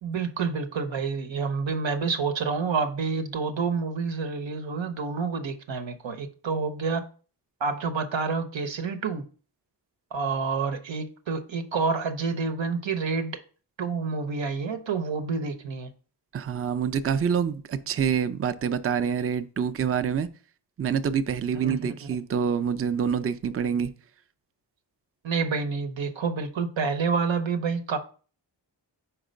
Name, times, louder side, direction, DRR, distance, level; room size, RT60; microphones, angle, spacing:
voice 1, 0.0-7.0 7.6-9.2 10.1-13.4 13.8-15.9 21.5-22.2 25.2-28.0, right 5 dB, 85° right, 0.8 m, -28 dB
voice 2, 16.3-20.3 20.8-23.9, right 7 dB, 35° right, 0.4 m, -26 dB
4.6 x 4.4 x 5.1 m
cardioid pair, 55°, 44 cm